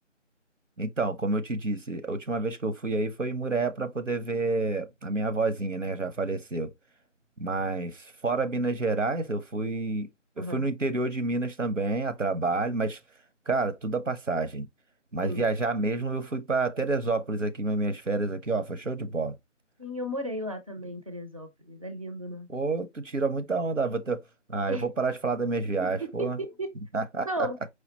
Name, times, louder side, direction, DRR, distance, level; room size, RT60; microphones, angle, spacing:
voice 1, 0.8-6.7 7.4-10.1 10.4-13.0 13.5-14.7 15.1-19.3 22.5-24.2 24.5-26.4 26.9-27.5, right 3 dB, 80° right, 1.2 m, -29 dB
voice 2, 19.8-22.5 24.7-24.8 25.8-25.9 26.2-26.7 27.2-27.6, equal, 30° right, 0.6 m, -34 dB
5.0 x 2.4 x 4.0 m
figure-of-eight pair, 165°, 37 cm